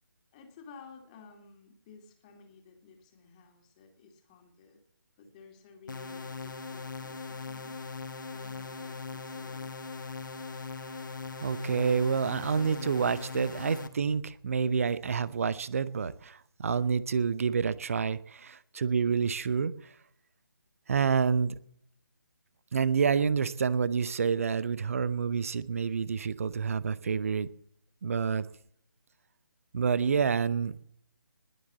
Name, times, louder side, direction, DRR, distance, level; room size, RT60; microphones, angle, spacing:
voice 1, 0.3-4.8 5.2-7.8 8.3-9.8, left 5 dB, 20° left, 3 dB, 2.5 m, -54 dB
sound 1, 5.9-13.9, left 4 dB, 55° left, 1.3 m, -40 dB
voice 2, 11.4-19.7 20.9-21.5 22.7-27.5 28.0-28.5 29.7-30.7, right 6 dB, 35° right, 18 dB, 0.7 m, -28 dB
20.5 x 7.2 x 7.2 m, 0.67 s
figure-of-eight pair, 150°, 12 cm